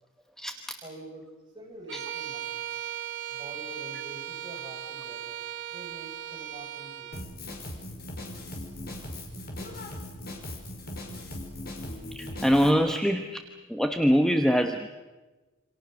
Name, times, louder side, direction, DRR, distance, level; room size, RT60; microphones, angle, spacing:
voice 1, 0.8-2.6 3.3-5.4 5.7-7.2, right 1 dB, 20° right, -1 dB, 6.8 m, -46 dB
Bowed string instrument, 1.9-7.3, right 11 dB, 60° right, 2.1 m, -37 dB
Drum kit, 7.1-12.7, left 1 dB, 45° left, 5.1 m, -39 dB
voice 2, 12.1-13.4 13.7-14.9, equal, ahead, 6 dB, 1.1 m, -23 dB
28.0 x 26.5 x 6.6 m, 1.2 s
head